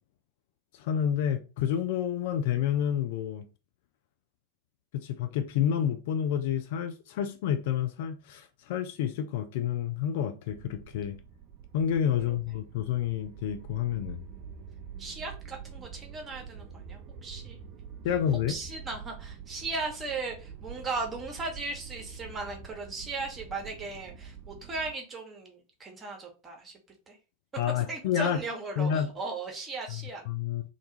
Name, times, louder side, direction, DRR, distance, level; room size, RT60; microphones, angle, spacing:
voice 1, 0.7-3.4 4.9-11.2 11.7-14.2 18.0-18.6 27.6-28.4 28.8-29.1 29.9-30.6, left 9 dB, 50° left, 0.3 m, -29 dB
sound 1, 10.5-24.9, right 7 dB, 40° right, 0.3 m, -46 dB
voice 2, 15.0-17.6 18.5-26.8 27.1-27.2 27.8-30.3, right 3 dB, 20° right, 0.8 m, -37 dB
2.5 x 2.3 x 2.8 m
figure-of-eight pair, 90°, 0 cm